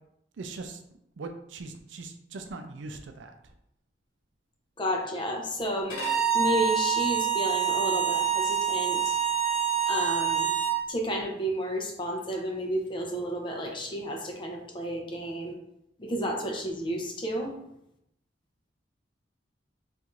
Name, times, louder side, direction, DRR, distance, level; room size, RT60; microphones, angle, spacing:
voice 1, 0.4-3.5, right 3 dB, 70° right, 6 dB, 0.4 m, -41 dB
voice 2, 4.8-9.2 9.9-10.5 10.9-15.6 16.0-17.5, equal, 25° left, 1 dB, 0.6 m, -31 dB
Bowed string instrument, 5.9-10.8, right 8 dB, 45° left, 1.3 m, -26 dB
4.4 x 2.5 x 2.5 m, 0.79 s
head